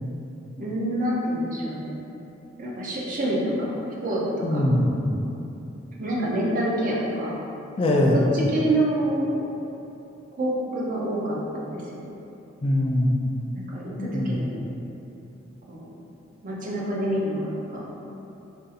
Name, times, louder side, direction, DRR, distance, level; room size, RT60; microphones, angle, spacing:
voice 1, 0.6-1.9 2.6-4.2 4.5-4.7 6.0-7.3 8.1-9.3 10.4-12.1 13.7-14.6 15.7-15.9 16.4-17.8, right 1 dB, 45° right, -4 dB, 0.5 m, -27 dB
voice 2, 4.4-5.0 7.8-8.4 12.6-13.2 14.0-14.4, left 1 dB, 30° left, -1 dB, 0.3 m, -22 dB
2.6 x 2.4 x 3.9 m, 2.9 s
head